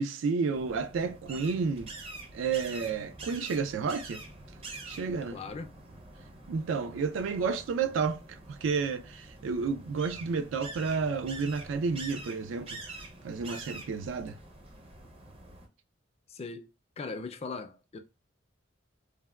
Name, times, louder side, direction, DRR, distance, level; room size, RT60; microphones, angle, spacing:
voice 1, 0.0-1.9 2.3-4.2 4.9-5.4 6.5-12.8 13.2-14.4, right 5 dB, 85° right, 0.3 m, -31 dB
sound 1, 0.5-15.7, right 2 dB, 30° right, 0.5 m, -46 dB
voice 2, 5.3-5.7 16.3-16.7 17.0-18.0, left 4 dB, 30° left, 0.3 m, -39 dB
3.3 x 2.1 x 2.2 m
head